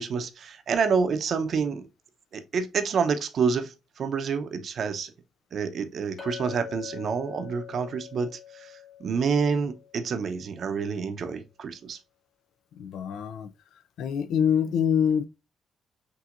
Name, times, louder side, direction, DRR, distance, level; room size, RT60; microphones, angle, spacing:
voice 1, 0.0-1.9 2.3-5.1 5.5-8.7 9.0-12.0, right 5 dB, 55° right, 0.7 m, -28 dB
Chink clink, 6.2-10.6, left 10 dB, 45° left, 2.0 m, -44 dB
voice 2, 12.8-13.5 14.0-15.3, left 8 dB, 80° left, 0.5 m, -25 dB
5.9 x 2.8 x 2.5 m
cardioid pair, 90°, 0 cm